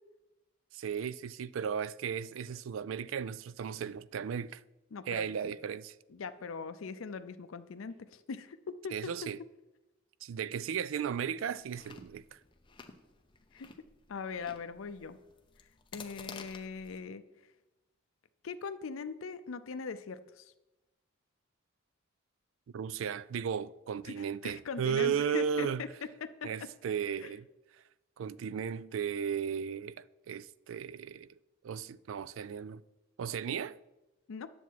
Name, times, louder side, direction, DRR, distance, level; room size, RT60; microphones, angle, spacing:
voice 1, 0.7-4.6 5.1-6.0 8.9-9.4 10.2-12.4 22.7-25.8 26.4-27.5 27.7-27.8 28.2-31.3 31.6-32.8 33.2-33.8, right 7 dB, 75° right, 0.3 m, -35 dB
voice 2, 4.9-5.5 6.1-9.1 13.5-13.7 14.1-15.2 15.9-17.2 18.4-20.5 24.1-25.9 26.2-26.5 27.2-27.3 34.3-34.5, left 5 dB, 80° left, 0.5 m, -41 dB
Chewing mastication, 11.6-17.0, left 5 dB, 25° left, 0.7 m, -52 dB
9.9 x 7.0 x 4.6 m
head